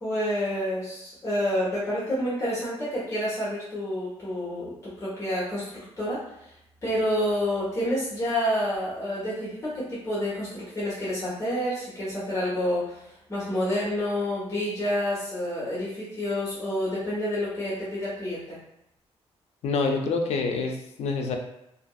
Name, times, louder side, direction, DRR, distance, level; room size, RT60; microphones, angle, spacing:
voice 1, 0.0-4.7 5.0-6.5 6.8-18.6, equal, 25° left, -9 dB, 1.0 m, -29 dB
voice 2, 19.6-21.4, left 4 dB, 70° left, 3 dB, 0.4 m, -26 dB
2.8 x 2.4 x 2.3 m, 0.81 s
cardioid pair, 135°, 11 cm